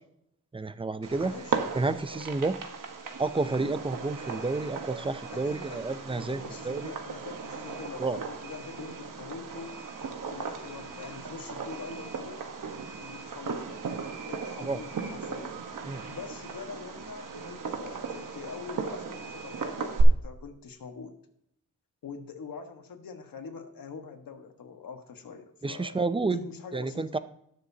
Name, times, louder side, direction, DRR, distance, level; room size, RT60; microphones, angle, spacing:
voice 1, 0.5-1.3 1.7-2.6 3.2-6.9 8.0-8.2 14.6-14.8 15.9-16.1 25.6-26.5 26.7-27.2, right 3 dB, 15° right, 12 dB, 0.5 m, -30 dB
Fireworks, 1.0-20.0, right 5 dB, 70° right, 1.3 m, -37 dB
voice 2, 1.2-1.7 5.3-9.7 10.3-12.5 13.0-13.8 14.3-15.6 16.1-21.2 22.0-26.0 26.3-27.2, left 5 dB, 90° left, 4 dB, 1.5 m, -44 dB
19.5 x 6.8 x 2.8 m, 0.76 s
wide cardioid pair, 135°, 33 cm